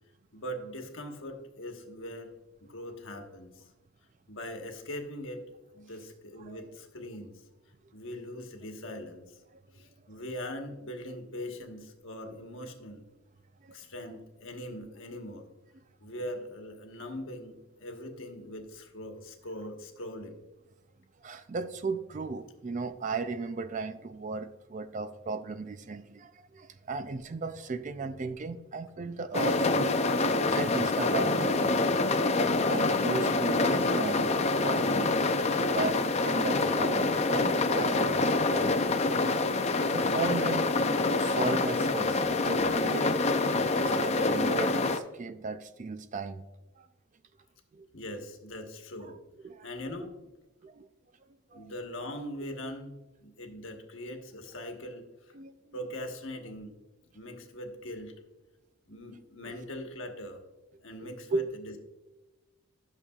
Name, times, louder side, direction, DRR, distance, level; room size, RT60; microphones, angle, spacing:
voice 1, 0.3-2.3 2.6-3.7 4.3-5.4 5.7-7.4 7.9-9.4 9.7-13.0 13.7-15.5 16.0-17.5 17.8-20.4 39.5-39.8 47.9-49.2 49.6-50.1 51.5-55.3 55.7-56.8 57.1-58.1 58.9-60.4 60.8-61.8, left 1 dB, 60° left, 4 dB, 1.2 m, -41 dB
voice 2, 21.2-29.9 30.5-32.0 32.7-35.1 35.6-39.2 39.9-40.7 41.2-43.3 43.8-46.5 46.8-46.9 47.7-47.9 49.0-49.1 49.4-49.7 50.6-50.9 51.5-51.7 55.3-55.7 59.4-59.5 61.3-61.5, right 3 dB, 35° right, 11 dB, 0.4 m, -36 dB
sound 1, 29.3-45.0, left 3 dB, 30° left, 0.4 m, -26 dB
11.5 x 6.7 x 2.4 m, 1.1 s
head